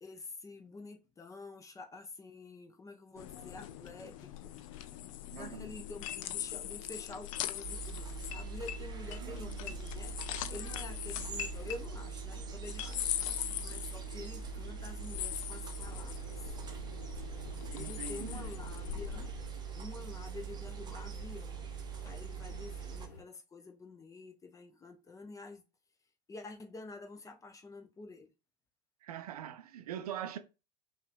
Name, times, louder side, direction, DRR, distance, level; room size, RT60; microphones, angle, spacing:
voice 1, 0.0-4.6 5.4-10.2 10.5-13.1 13.6-16.5 17.7-19.3 19.8-21.6 22.0-25.6 26.3-28.3, left 3 dB, 15° left, 0.7 m, -48 dB
sound 1, 3.2-19.3, left 12 dB, 55° left, 0.4 m, -41 dB
voice 2, 5.3-5.8 9.2-9.8 17.7-18.5 29.0-30.4, right 10 dB, 65° right, 0.5 m, -43 dB
sound 2, 7.6-23.1, right 9 dB, 20° right, 0.8 m, -43 dB
sound 3, 15.8-23.2, left 3 dB, 70° left, 1.0 m, -50 dB
5.5 x 2.5 x 2.3 m
figure-of-eight pair, 75°, 21 cm